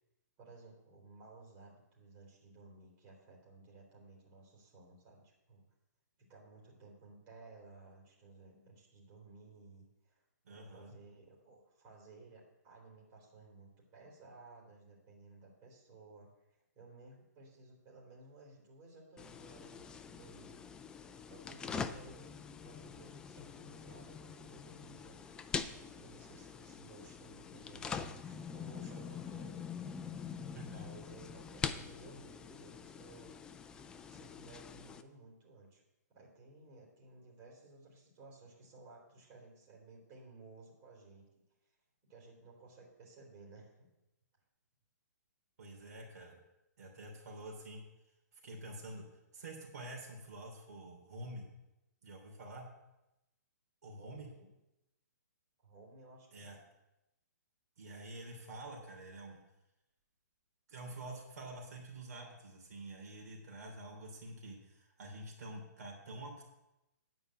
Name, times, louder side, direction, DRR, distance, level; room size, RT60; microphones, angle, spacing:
voice 1, 0.4-5.7 6.2-20.6 20.9-22.3 22.6-25.2 25.9-33.3 34.1-35.8 36.1-41.4 42.1-43.9 54.0-54.5 55.6-56.6, right 3 dB, 25° right, -3 dB, 3.8 m, -57 dB
voice 2, 10.4-10.9 30.4-30.8 45.6-46.4 46.8-47.8 48.3-51.5 52.0-52.7 53.8-54.3 56.3-56.6 57.8-59.4 60.7-66.4, right 1 dB, 65° right, 0 dB, 3.1 m, -48 dB
sound 1, 19.2-35.0, left 6 dB, 10° left, 0.3 m, -44 dB
9.7 x 5.1 x 8.0 m, 0.92 s
hypercardioid pair, 150°, 9 cm